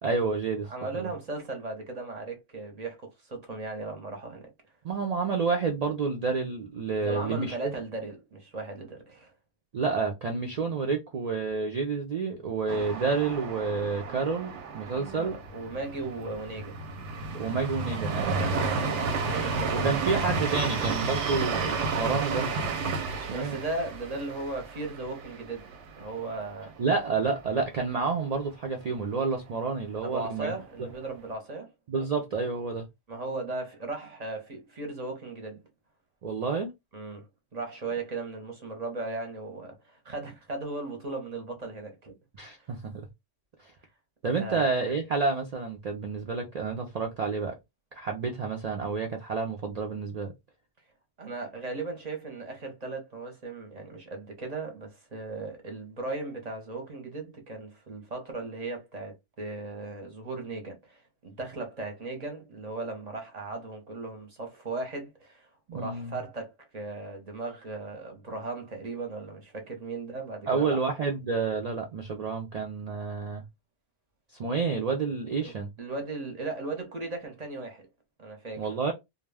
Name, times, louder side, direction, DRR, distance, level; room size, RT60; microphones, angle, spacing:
voice 1, 0.0-0.7 0.9-1.1 4.8-7.7 9.7-15.3 17.3-18.4 19.8-22.5 23.3-23.6 26.8-30.5 31.9-32.9 36.2-36.7 42.4-42.9 43.6-43.7 44.2-47.5 47.9-50.3 65.7-66.2 70.5-73.4 74.4-75.7 78.6-78.9, right 4 dB, 65° right, 0.4 m, -29 dB
voice 2, 0.7-4.4 7.0-9.3 14.9-16.8 18.2-20.0 23.1-26.7 30.0-31.7 33.1-35.6 36.9-37.3 37.5-42.1 42.5-42.6 44.4-44.7 51.2-70.8 75.4-75.5 75.8-77.9 78.2-78.7, right 3 dB, 40° right, 0.7 m, -37 dB
sound 1, 12.7-26.4 26.7-26.8 27.2-27.8, right 4 dB, 90° right, 0.9 m, -32 dB
2.2 x 2.0 x 3.3 m
omnidirectional pair, 1.2 m